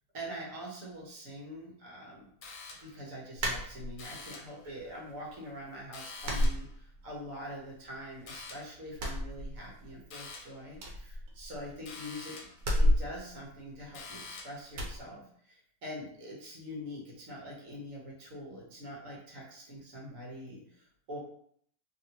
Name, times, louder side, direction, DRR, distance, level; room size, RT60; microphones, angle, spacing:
voice 1, 0.1-2.3 2.8-12.5 12.8-21.2, equal, 65° right, -3 dB, 1.3 m, -44 dB
sound 1, 2.4-3.1 4.0-4.6 5.9-6.8 8.3-8.8 10.1-10.6 11.9-12.7 13.9-14.7, left 4 dB, 70° left, 1.0 m, -46 dB
sound 2, 3.4-4.3 4.7-5.4 5.6-5.8 6.2-7.3 7.6-8.5 8.9-10.0 10.3-10.4 10.7-11.9 12.6-14.2 14.7-15.0, equal, 85° right, 1.2 m, -31 dB
2.9 x 2.8 x 2.8 m, 0.64 s
omnidirectional pair, 1.6 m